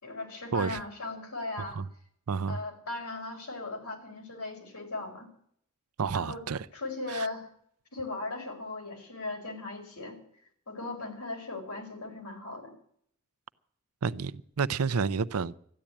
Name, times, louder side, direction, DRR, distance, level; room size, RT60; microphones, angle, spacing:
voice 1, 0.0-1.8 2.5-5.3 6.1-6.4 6.7-7.5 7.9-10.2 10.7-12.7, left 2 dB, 90° left, 4.8 m, -38 dB
voice 2, 2.3-2.6 6.0-6.7 7.1-7.3 14.0-15.6, right 5 dB, 90° right, 0.6 m, -30 dB
13.5 x 10.5 x 8.6 m
head